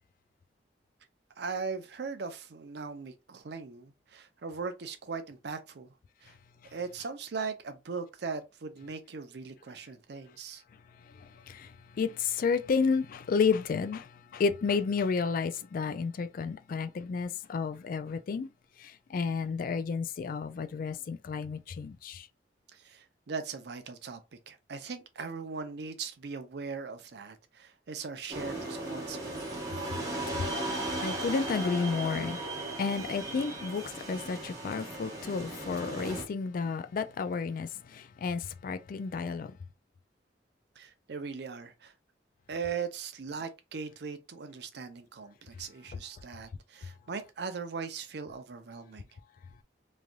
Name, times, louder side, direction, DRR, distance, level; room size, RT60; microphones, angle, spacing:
voice 1, 1.4-5.9 6.2-6.4 6.7-10.6 22.7-24.2 24.5-29.8 40.8-41.9 42.5-49.1, right 5 dB, 65° right, 0.5 m, -39 dB
voice 2, 12.0-18.5 18.8-22.3 30.6-30.7 31.0-32.4 32.8-39.5, left 5 dB, 50° left, 0.3 m, -31 dB
sound 1, 28.3-36.2, right 2 dB, 20° right, 1.0 m, -36 dB
3.1 x 2.6 x 2.2 m
head